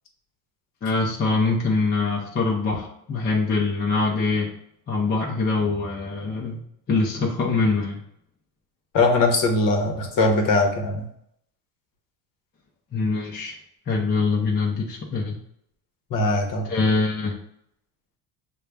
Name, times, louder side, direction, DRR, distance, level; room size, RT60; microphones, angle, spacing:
voice 1, 0.8-4.5 4.9-6.6 6.9-8.0 12.9-13.6 13.9-15.4 16.7-17.3, left 3 dB, 20° left, -3 dB, 0.6 m, -23 dB
voice 2, 8.9-11.1 16.1-16.7, left 2 dB, 45° left, 3 dB, 1.0 m, -21 dB
6.6 x 2.3 x 3.3 m, 0.72 s
cardioid pair, 145°, 46 cm